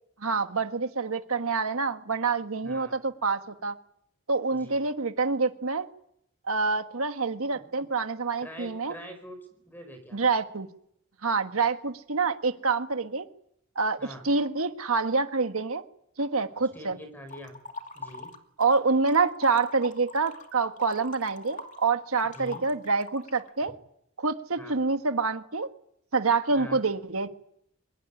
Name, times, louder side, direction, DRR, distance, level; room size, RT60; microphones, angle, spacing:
voice 1, 0.2-3.7 4.3-5.9 6.5-8.9 10.1-10.7 11.2-13.3 13.7-14.0 14.2-15.8 16.2-17.0 18.6-23.7 24.2-25.7 26.1-27.3, right 4 dB, 90° right, 8 dB, 1.6 m, -27 dB
voice 2, 2.6-3.0 4.5-4.8 7.5-7.6 8.4-9.4 9.6-10.2 14.0-14.2 16.7-17.6 17.9-18.3 22.3-22.6 24.6-24.8 26.5-26.8, equal, 10° left, 7 dB, 4.7 m, -44 dB
sound 1, 17.3-18.8 19.1-23.5, left 3 dB, 35° left, 2.4 m, -43 dB
23.5 x 21.0 x 9.9 m, 0.72 s
head